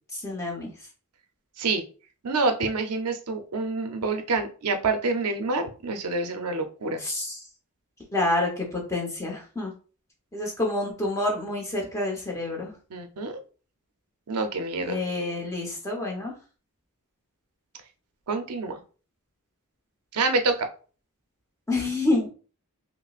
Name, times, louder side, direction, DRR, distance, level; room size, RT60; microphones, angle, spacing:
voice 1, 0.1-0.7 7.0-7.4 8.1-9.7 10.3-12.7 14.8-16.3 21.7-22.3, left 2 dB, 15° left, -1 dB, 0.9 m, -28 dB
voice 2, 2.2-7.0 12.9-13.4 14.3-15.0 18.3-18.8 20.1-20.7, right 3 dB, 90° right, 6 dB, 0.6 m, -27 dB
5.4 x 2.1 x 2.4 m, 0.38 s
head